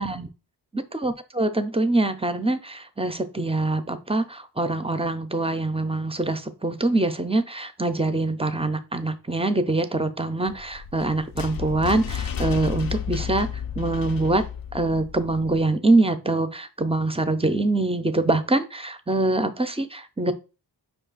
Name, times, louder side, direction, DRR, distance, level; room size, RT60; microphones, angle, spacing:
voice 1, 0.9-13.5 13.8-14.4 14.7-20.3, right 2 dB, 15° right, 10 dB, 0.5 m, -24 dB
sound 1, 10.5-15.6, left 8 dB, 55° left, 0.5 m, -32 dB
5.2 x 2.4 x 3.9 m, 0.32 s
cardioid pair, 40°, 43 cm